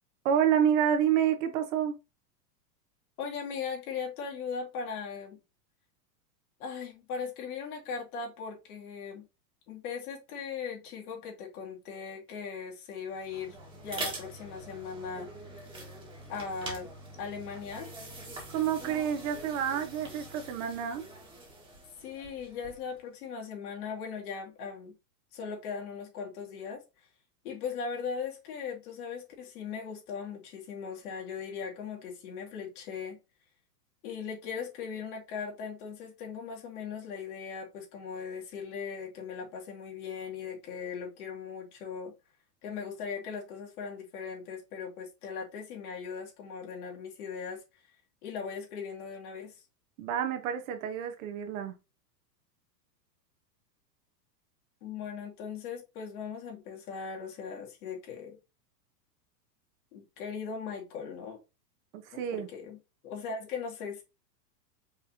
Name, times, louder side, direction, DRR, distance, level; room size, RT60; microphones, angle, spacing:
voice 1, 0.2-1.9 18.5-21.0 50.0-51.7 61.9-62.5, right 9 dB, 50° right, 1.2 m, -28 dB
voice 2, 3.2-5.4 6.6-9.3 9.7-15.3 16.3-16.9 17.2-17.9 22.0-24.9 25.3-27.1 27.4-33.2 34.0-42.1 42.6-47.6 48.2-49.6 54.8-58.4 59.9-61.4 62.1-62.8 63.0-64.0, left 6 dB, 60° left, 2.5 m, -39 dB
sound 1, 13.1-23.0, right 2 dB, 10° right, 1.6 m, -44 dB
5.5 x 3.4 x 2.8 m
supercardioid pair, 145°, 49 cm